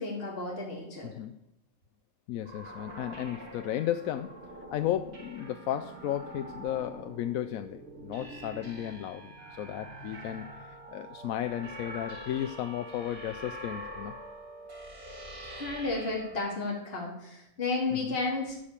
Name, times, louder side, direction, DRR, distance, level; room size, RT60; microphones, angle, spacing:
voice 1, 0.0-1.1 15.5-18.6, left 3 dB, 45° left, -2 dB, 2.2 m, -33 dB
voice 2, 1.0-1.4 2.3-4.3 4.7-14.1 17.9-18.1, left 12 dB, 85° left, 9 dB, 1.0 m, -34 dB
sound 1, 2.4-16.4, right 1 dB, 85° right, 2.8 m, -45 dB
12.5 x 5.1 x 8.3 m, 0.82 s
omnidirectional pair, 1.4 m